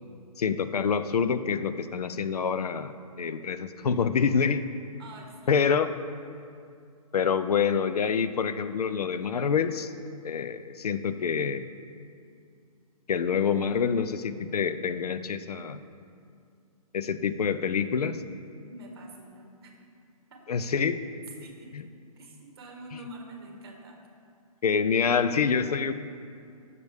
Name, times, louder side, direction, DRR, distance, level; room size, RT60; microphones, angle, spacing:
voice 1, 0.4-2.9 3.2-4.6 5.5-5.9 7.1-9.9 10.2-11.6 13.1-15.8 16.9-18.2 20.5-21.0 21.7-21.8 24.6-25.9, left 6 dB, 80° left, 11 dB, 0.6 m, -26 dB
voice 2, 5.0-5.8 18.7-19.8 20.3-20.5 21.4-21.9 22.1-24.0, right 1 dB, 40° right, 2 dB, 1.4 m, -46 dB
14.5 x 6.8 x 3.5 m, 2.4 s
hypercardioid pair, 175°, 19 cm